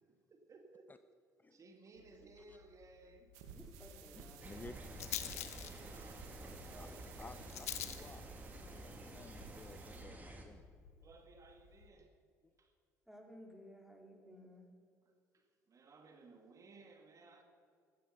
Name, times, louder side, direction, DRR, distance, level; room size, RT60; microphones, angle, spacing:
voice 1, 0.1-0.9 1.5-3.4 5.7-7.2 11.0-12.1 12.6-12.7 15.0-17.4, right 3 dB, 45° right, 5 dB, 1.9 m, -60 dB
Rattle, 2.0-11.9, left 11 dB, 90° left, 0.8 m, -50 dB
sound 1, 3.3-10.0, right 6 dB, 80° right, 1.4 m, -55 dB
voice 2, 3.5-4.6 13.1-14.7, equal, 5° right, 0 dB, 4.2 m, -56 dB
voice 3, 4.1-4.8 6.0-6.2 6.8-6.9 7.2-8.3 8.6-10.6, left 3 dB, 25° left, 12 dB, 0.6 m, -55 dB
sound 2, 4.4-10.5, right 1 dB, 20° right, 2.7 m, -51 dB
15.5 x 13.0 x 5.5 m, 2.3 s
hypercardioid pair, 55°, 8 cm